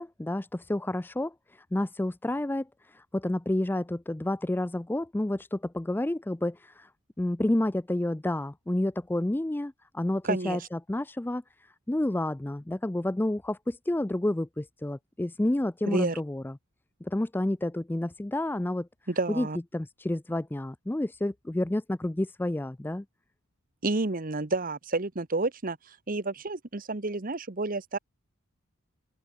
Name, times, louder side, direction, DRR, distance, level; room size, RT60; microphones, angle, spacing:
voice 1, 0.0-6.9 7.2-16.5 17.0-18.9 19.3-19.5 19.7-23.0, left 1 dB, 10° left, 0.3 m, -30 dB
voice 2, 10.2-10.6 15.9-16.2 19.1-19.6 23.8-28.0, right 3 dB, 40° right, 1.1 m, -30 dB
open air
head